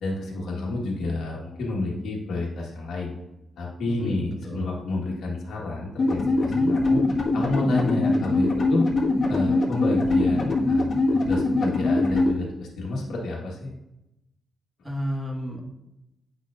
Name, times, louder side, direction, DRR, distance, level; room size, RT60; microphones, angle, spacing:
voice 1, 0.0-3.1 3.6-7.0 7.3-8.9 9.3-13.7, left 2 dB, 85° left, -2 dB, 1.6 m, -29 dB
voice 2, 3.9-4.7 6.5-6.7 14.8-15.6, equal, 10° right, 0 dB, 1.7 m, -32 dB
sound 1, 6.0-12.3, left 2 dB, 50° left, 1.6 m, -22 dB
8.6 x 5.5 x 2.6 m, 0.89 s
cardioid pair, 85°, 0 cm